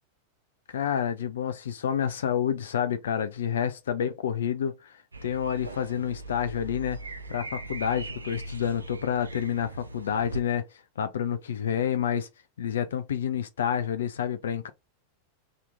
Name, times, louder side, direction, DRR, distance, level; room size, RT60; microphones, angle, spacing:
voice 1, 0.7-7.0 7.3-10.7 11.0-12.3 12.6-14.7, left 8 dB, 65° left, 0.4 m, -29 dB
sound 1, 5.1-10.4, right 2 dB, 80° right, 0.6 m, -40 dB
3.5 x 2.9 x 3.3 m
figure-of-eight pair, 90°, 0 cm